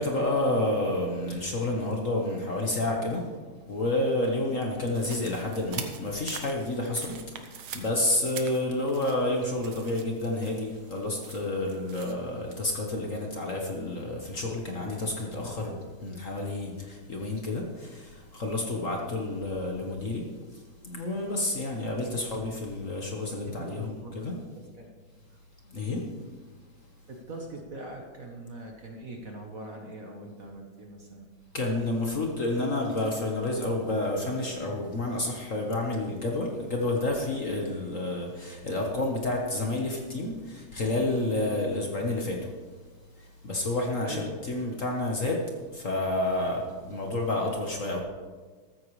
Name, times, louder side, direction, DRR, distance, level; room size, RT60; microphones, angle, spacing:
voice 1, 0.0-3.3 3.7-24.4 25.6-26.1 31.5-42.6 43.1-48.0, left 2 dB, 40° left, 1 dB, 1.4 m, -30 dB
sound 1, 4.9-12.1, right 8 dB, 75° right, 1.8 m, -44 dB
voice 2, 23.6-24.5 24.8-24.9 27.1-31.3 44.0-44.4, right 2 dB, 45° right, 1 dB, 1.4 m, -42 dB
14.0 x 14.0 x 3.2 m, 1.4 s
omnidirectional pair, 2.3 m